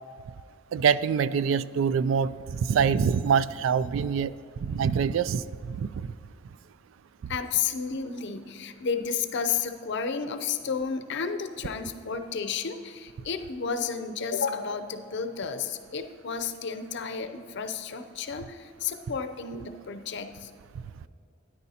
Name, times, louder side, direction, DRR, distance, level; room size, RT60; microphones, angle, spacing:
voice 1, 0.7-4.3 4.6-6.1 7.2-7.3, right 6 dB, 75° right, 16 dB, 0.3 m, -25 dB
voice 2, 7.3-20.5, left 6 dB, 60° left, 8 dB, 0.6 m, -32 dB
13.0 x 9.8 x 2.8 m, 2.4 s
head